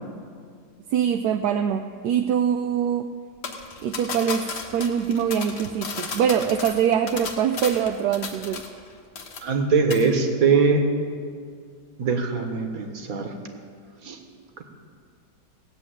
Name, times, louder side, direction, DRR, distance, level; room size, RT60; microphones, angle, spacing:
voice 1, 0.9-3.1 3.8-8.6, right 8 dB, 75° right, 7 dB, 1.1 m, -23 dB
sound 1, 3.4-8.9 9.2-9.6 9.9-10.1, left 4 dB, 80° left, 2.0 m, -34 dB
voice 2, 9.4-10.8 12.0-13.3 14.0-14.2, right 5 dB, 55° right, 4 dB, 1.9 m, -21 dB
17.5 x 7.8 x 9.1 m, 2.1 s
omnidirectional pair, 1.8 m